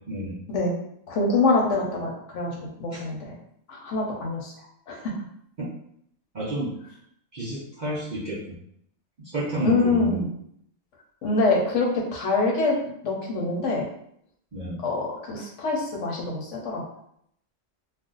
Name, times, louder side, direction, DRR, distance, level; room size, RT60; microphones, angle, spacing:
voice 1, 0.1-0.4 5.6-5.7 6.3-6.7 7.3-8.4 9.2-10.2 14.5-14.8, right 1 dB, 50° right, -7 dB, 0.5 m, -30 dB
voice 2, 1.1-2.5 2.8-3.3 3.7-4.5 4.9-5.2 9.6-10.3 11.2-13.9 14.8-16.8, left 3 dB, 70° left, -1 dB, 1.0 m, -25 dB
2.5 x 2.2 x 3.8 m, 0.70 s
omnidirectional pair, 1.4 m